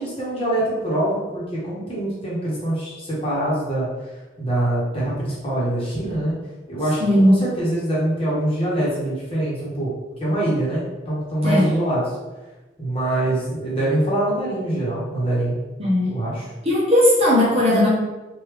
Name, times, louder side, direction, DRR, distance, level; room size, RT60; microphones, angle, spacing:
voice 1, 0.0-3.9 4.4-6.3 6.7-9.9 10.2-12.0 12.8-15.6 16.0-16.5, right 1 dB, 30° left, -7 dB, 1.2 m, -24 dB
voice 2, 7.0-7.4 11.4-11.7 15.8-16.2 16.6-17.9, left 1 dB, 30° right, -6 dB, 0.9 m, -17 dB
3.3 x 2.6 x 3.3 m, 1.1 s
head